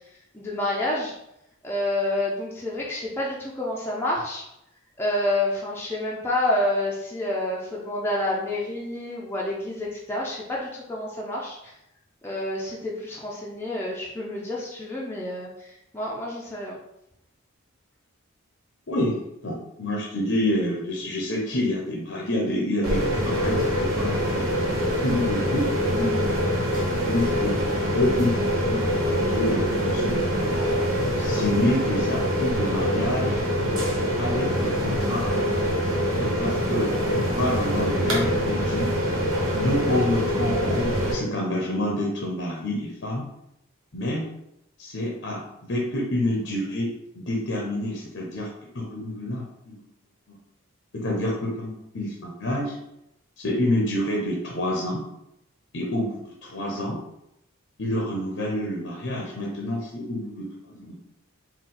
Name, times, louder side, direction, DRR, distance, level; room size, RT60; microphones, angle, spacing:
voice 1, 0.3-1.1 1.6-4.4 5.0-11.7 12.2-16.8, left 1 dB, 10° left, -5 dB, 0.6 m, -28 dB
voice 2, 18.9-19.2 19.4-24.4 25.0-25.7 26.0-26.2 27.1-28.4 28.7-30.2 31.2-33.4 34.2-35.3 36.1-38.9 39.5-43.2 43.9-44.3 44.8-48.5 48.7-49.8 50.3-50.4 50.9-52.8 53.4-55.0 55.7-57.0 57.8-60.5 60.7-61.0, left 1 dB, 60° left, -3 dB, 0.8 m, -28 dB
sound 1, 22.8-41.1, equal, 80° right, 1.3 m, -24 dB
4.4 x 2.3 x 3.8 m, 0.82 s
head